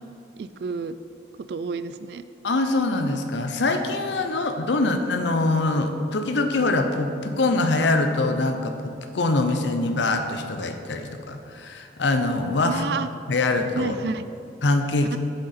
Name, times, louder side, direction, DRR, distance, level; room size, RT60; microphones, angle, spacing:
voice 1, 0.4-1.0 1.5-2.2 12.6-13.1 13.8-14.2 15.1-15.2, right 5 dB, 65° right, 13 dB, 0.3 m, -30 dB
voice 2, 2.4-12.8 13.3-14.0 14.6-15.2, left 2 dB, 80° left, 6 dB, 0.7 m, -24 dB
7.8 x 6.4 x 4.2 m, 2.5 s
head